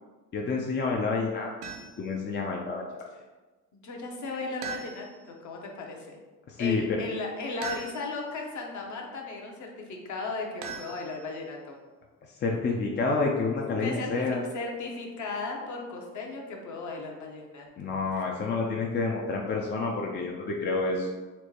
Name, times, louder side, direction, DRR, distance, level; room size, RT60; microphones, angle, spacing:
voice 1, 0.3-1.5 2.0-3.0 6.5-7.0 12.4-14.4 17.8-21.1, left 3 dB, 30° left, -1 dB, 0.4 m, -29 dB
sound 1, 1.6-2.1 4.6-5.3 7.6-8.3 10.6-11.5, right 6 dB, 60° right, 0.7 m, -40 dB
voice 2, 3.7-6.2 6.6-11.8 13.8-17.7, left 3 dB, 50° left, 1 dB, 0.9 m, -36 dB
4.3 x 2.2 x 2.9 m, 1.2 s
supercardioid pair, 70°, 39 cm